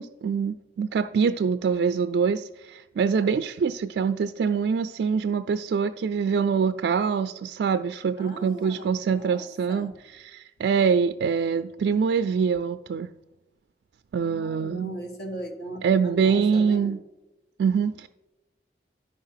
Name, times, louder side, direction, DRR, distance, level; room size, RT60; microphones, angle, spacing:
voice 1, 0.0-13.1 14.1-14.9 15.8-17.0 17.6-18.1, right 6 dB, 75° right, 9 dB, 0.3 m, -24 dB
voice 2, 8.2-9.9 14.2-16.9, right 1 dB, 65° left, 3 dB, 1.5 m, -39 dB
11.0 x 5.1 x 5.7 m, 1.0 s
head